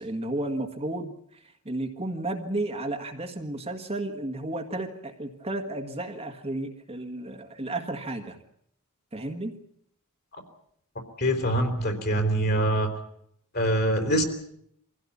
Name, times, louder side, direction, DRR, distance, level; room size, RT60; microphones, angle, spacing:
voice 1, 0.0-8.4 9.1-9.6, right 2 dB, 25° right, 4 dB, 1.7 m, -33 dB
voice 2, 11.2-12.9 13.5-14.2, right 1 dB, 45° left, 6 dB, 4.0 m, -24 dB
24.0 x 16.0 x 8.6 m, 0.72 s
head